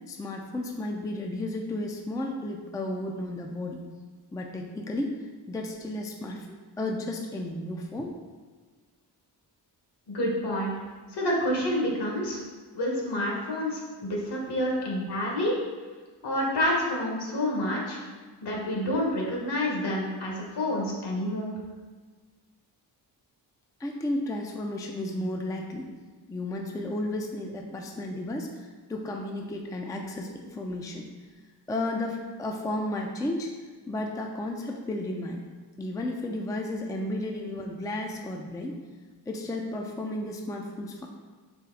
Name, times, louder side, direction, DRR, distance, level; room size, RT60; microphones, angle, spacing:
voice 1, 0.1-3.9 4.3-5.2 5.5-6.5 6.8-8.1 14.7-14.9 23.8-25.9 26.3-31.1 31.7-33.5 33.9-35.4 35.8-38.8 39.3-41.1, left 1 dB, 10° left, 1 dB, 0.4 m, -33 dB
voice 2, 10.1-10.7 11.1-12.4 12.7-15.5 16.2-18.0 18.4-21.6, left 1 dB, 65° left, -2 dB, 1.4 m, -28 dB
4.3 x 3.2 x 3.8 m, 1.4 s
cardioid pair, 95°, 43 cm